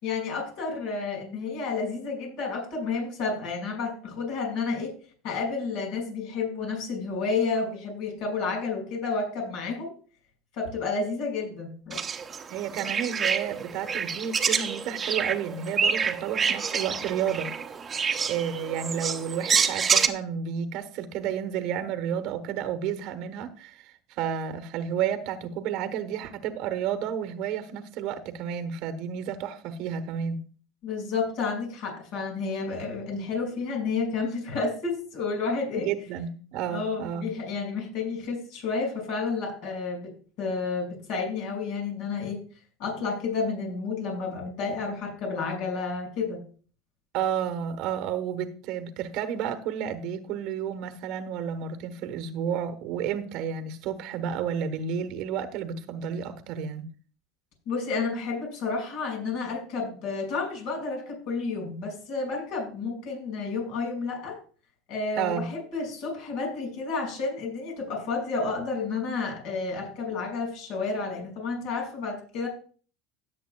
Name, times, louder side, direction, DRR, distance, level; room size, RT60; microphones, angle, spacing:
voice 1, 0.0-4.9 5.2-9.9 10.5-12.0 30.8-35.9 36.7-40.1 40.4-42.4 42.8-46.4 57.7-64.4 64.9-72.5, left 4 dB, 65° left, 1 dB, 5.9 m, -31 dB
sound 1, 11.9-20.1, right 6 dB, 25° right, 0.9 m, -27 dB
voice 2, 12.5-17.5 18.2-30.4 35.7-37.3 47.1-56.9 65.2-65.5, right 8 dB, 60° right, 10 dB, 1.2 m, -31 dB
17.0 x 8.0 x 2.3 m, 0.40 s
supercardioid pair, 125°, 0 cm